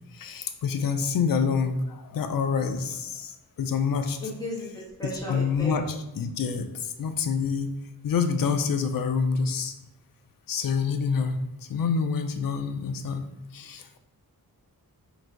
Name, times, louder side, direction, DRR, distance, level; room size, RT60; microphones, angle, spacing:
voice 1, 0.1-4.2 5.3-7.7 8.0-9.7 10.5-11.4 11.7-13.2 13.5-14.0, left 5 dB, 65° left, 7 dB, 0.5 m, -27 dB
voice 2, 4.2-5.7, left 1 dB, 10° left, -6 dB, 1.4 m, -35 dB
3.9 x 2.6 x 4.4 m, 0.92 s
wide cardioid pair, 125°, 37 cm